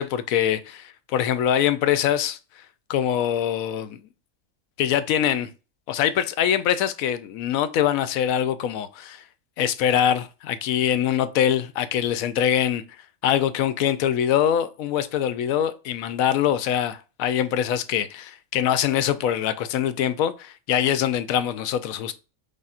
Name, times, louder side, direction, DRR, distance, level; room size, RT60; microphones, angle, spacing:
voice 1, 0.0-2.4 2.9-4.0 4.8-5.5 5.9-9.2 9.6-12.8 13.2-22.1, left 10 dB, 80° left, 1.0 m, -23 dB
5.5 x 3.5 x 2.4 m
omnidirectional pair, 1.4 m